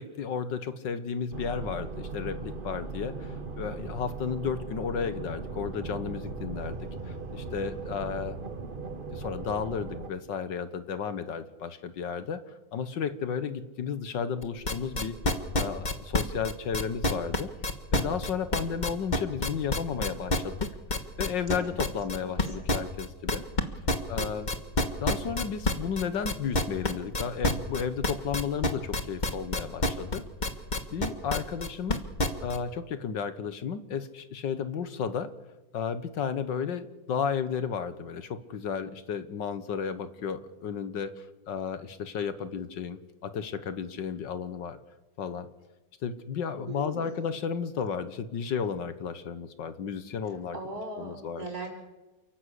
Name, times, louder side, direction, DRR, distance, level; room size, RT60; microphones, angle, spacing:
voice 1, 0.0-8.4 8.9-15.2 15.5-17.5 17.9-20.7 21.2-23.4 24.1-24.5 25.0-30.2 30.9-32.0 32.4-35.3 35.7-44.8 45.2-45.5 46.0-50.6 51.0-51.5, left 6 dB, 80° left, 12 dB, 1.9 m, -33 dB
sound 1, 1.3-10.1, right 3 dB, 30° right, 1.3 m, -38 dB
sound 2, 14.4-32.6, left 2 dB, 25° left, 1.5 m, -27 dB
voice 2, 21.5-22.7 24.2-24.6 46.7-47.3 50.2-51.7, right 2 dB, 50° right, 1 dB, 6.1 m, -41 dB
29.0 x 12.5 x 8.3 m, 1.1 s
omnidirectional pair, 2.0 m